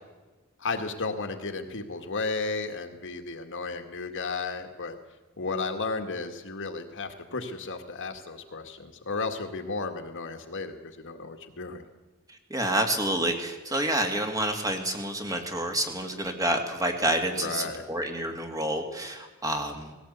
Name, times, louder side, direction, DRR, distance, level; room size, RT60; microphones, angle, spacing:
voice 1, 0.6-5.0 5.4-11.8 17.4-17.9, left 3 dB, 60° left, 6 dB, 2.0 m, -33 dB
voice 2, 12.3-20.0, right 1 dB, 15° right, 4 dB, 2.5 m, -28 dB
19.0 x 17.0 x 8.3 m, 1.2 s
head